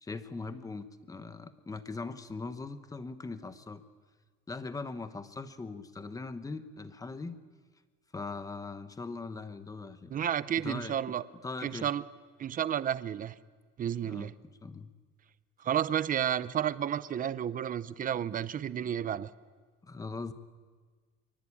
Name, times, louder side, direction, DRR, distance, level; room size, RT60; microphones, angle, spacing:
voice 1, 0.0-3.8 4.5-7.4 8.1-10.2 10.6-11.1 11.4-11.9 14.0-14.3 14.6-14.9 19.8-20.3, left 3 dB, 10° left, 10 dB, 1.1 m, -40 dB
voice 2, 10.1-11.2 11.6-12.0 12.4-13.3 13.8-14.3 15.6-19.3, right 9 dB, 30° right, 16 dB, 0.7 m, -31 dB
26.0 x 23.5 x 8.6 m, 1.5 s
cardioid pair, 175°, 30 cm